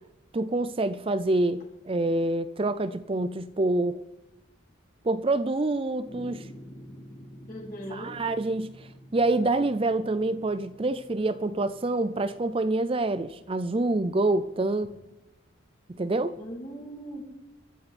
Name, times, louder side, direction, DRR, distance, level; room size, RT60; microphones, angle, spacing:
voice 1, 0.3-4.0 5.0-6.5 7.9-14.9 15.9-16.4, right 2 dB, 25° right, 13 dB, 0.4 m, -27 dB
sound 1, 6.0-12.5, equal, 25° left, 3.2 m, -49 dB
voice 2, 7.5-8.1 16.4-17.2, equal, 45° left, -4 dB, 6.8 m, -39 dB
22.5 x 13.0 x 4.3 m, 0.97 s
head